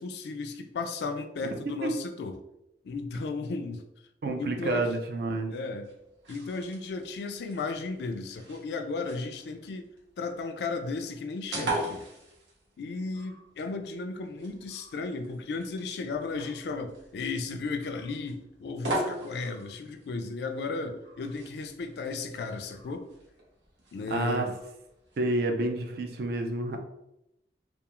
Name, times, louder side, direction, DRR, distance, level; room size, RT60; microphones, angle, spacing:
voice 1, 0.0-2.4 2.8-3.8 4.4-4.9 5.5-5.9 6.3-9.9 10.2-12.0 12.8-23.1 23.9-24.5, left 3 dB, 65° left, 6 dB, 0.3 m, -35 dB
voice 2, 1.4-1.9 4.2-5.5 24.1-24.5 25.2-26.9, right 2 dB, 60° right, 4 dB, 0.4 m, -29 dB
sound 1, 5.7-25.4, right 1 dB, 90° right, 0.8 m, -41 dB
2.3 x 2.3 x 2.8 m, 0.85 s
head